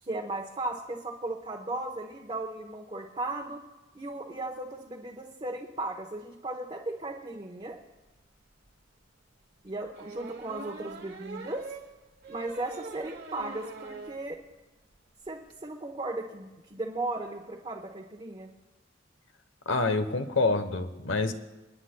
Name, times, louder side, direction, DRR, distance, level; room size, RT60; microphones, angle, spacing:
voice 1, 0.0-3.6 3.9-7.8 9.6-11.6 12.3-14.4 15.2-18.5, right 2 dB, 30° right, 0 dB, 0.9 m, -36 dB
Gslide updown fast, 8.2-8.3 8.6-8.7 9.9-14.2 14.6-14.7 15.0-15.1 15.3-15.5, right 3 dB, 60° right, 1.2 m, -43 dB
voice 2, 19.7-21.3, left 3 dB, 90° left, 9 dB, 0.9 m, -27 dB
29.5 x 9.8 x 2.2 m, 1.1 s
head